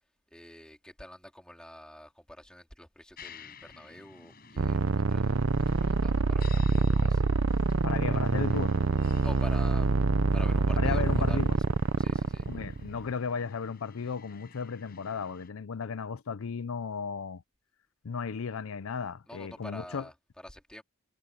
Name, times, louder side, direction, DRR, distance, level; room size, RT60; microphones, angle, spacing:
voice 1, 0.3-7.2 8.1-8.2 9.1-9.9 10.3-11.4 12.0-12.5 19.3-20.8, equal, 5° left, 3.5 m, -47 dB
sound 1, 3.2-15.5, left 5 dB, 45° left, 6.6 m, -54 dB
sound 2, 4.6-13.0, right 3 dB, 70° right, 0.7 m, -26 dB
voice 2, 7.8-8.8 10.8-11.5 12.5-17.4 18.0-20.0, left 5 dB, 70° left, 0.5 m, -35 dB
head